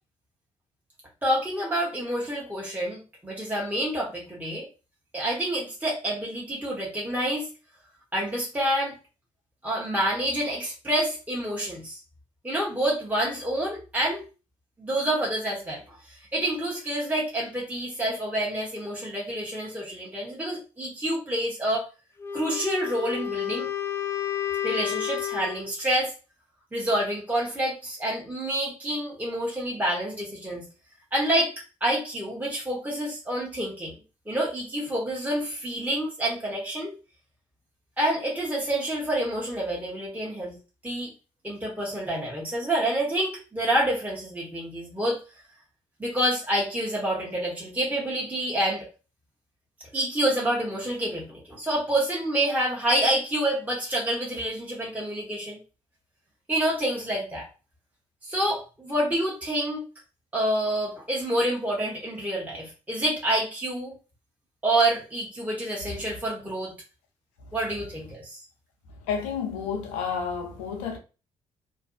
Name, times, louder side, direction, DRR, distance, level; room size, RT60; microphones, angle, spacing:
voice 1, 1.2-4.7 5.1-7.5 8.1-9.0 9.6-12.0 12.4-14.3 14.8-21.9 22.3-23.7 24.6-26.1 26.7-30.6 31.1-31.5 31.8-33.9 34.3-36.9 38.0-40.6 40.8-41.1 41.4-45.2 46.0-48.8 49.9-55.6 56.5-57.5 58.2-59.9 60.3-63.9 64.6-66.7 67.5-68.4, right 1 dB, 10° right, 1.0 m, -28 dB
Wind instrument woodwind instrument, 22.2-25.7, left 11 dB, 15° left, 0.6 m, -31 dB
voice 2, 69.1-71.0, left 6 dB, 80° left, 0.5 m, -30 dB
2.5 x 2.2 x 2.5 m
hypercardioid pair, 45°, 15 cm